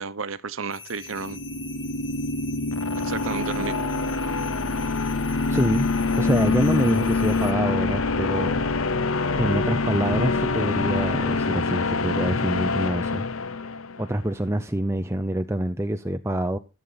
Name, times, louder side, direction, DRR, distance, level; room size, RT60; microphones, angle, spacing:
voice 1, 0.0-1.4 3.0-3.9, right 4 dB, 70° right, 1.0 m, -32 dB
sound 1, 0.7-7.5, left 6 dB, 60° left, 2.4 m, -43 dB
sound 2, 1.1-14.1, left 3 dB, 75° left, 0.9 m, -25 dB
voice 2, 5.5-5.9 6.1-8.6 9.4-13.2 14.0-16.6, right 1 dB, 10° right, 0.6 m, -26 dB
14.5 x 8.4 x 4.0 m
head